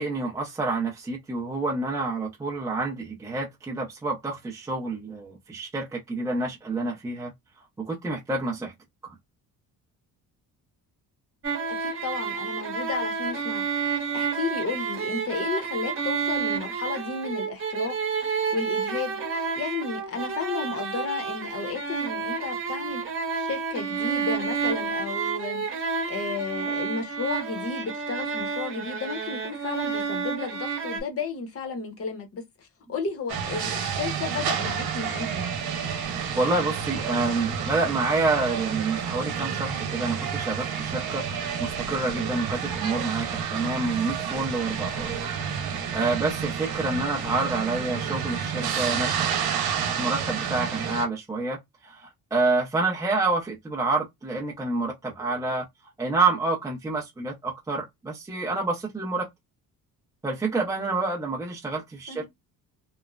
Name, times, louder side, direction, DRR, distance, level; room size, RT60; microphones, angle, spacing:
voice 1, 0.0-7.3 7.8-8.7 9.0-9.1 36.4-41.2 41.6-45.3 45.5-49.2 49.8-51.6 51.8-55.7 56.0-59.3 60.2-62.2, right 3 dB, 10° right, 0.5 m, -28 dB
sound 1, 11.4-31.0, right 5 dB, 35° right, 0.8 m, -30 dB
voice 2, 11.8-35.4 62.1-62.2, left 5 dB, 40° left, 0.8 m, -33 dB
sound 2, 33.3-51.1, right 7 dB, 90° right, 1.0 m, -30 dB
3.0 x 2.1 x 2.3 m
cardioid pair, 155°, 36 cm